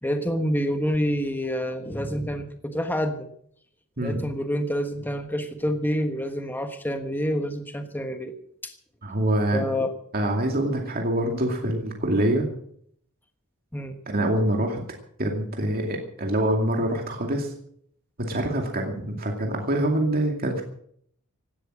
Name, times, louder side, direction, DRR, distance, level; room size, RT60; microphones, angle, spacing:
voice 1, 0.0-3.3 4.0-8.3 8.6-8.7 9.5-9.9 13.7-13.9, equal, 10° left, 6 dB, 1.3 m, -27 dB
voice 2, 9.0-9.6 10.1-12.5 14.1-14.8 15.2-17.5 18.2-20.6, right 1 dB, 45° right, 1 dB, 2.4 m, -25 dB
17.0 x 12.0 x 6.2 m, 0.66 s
head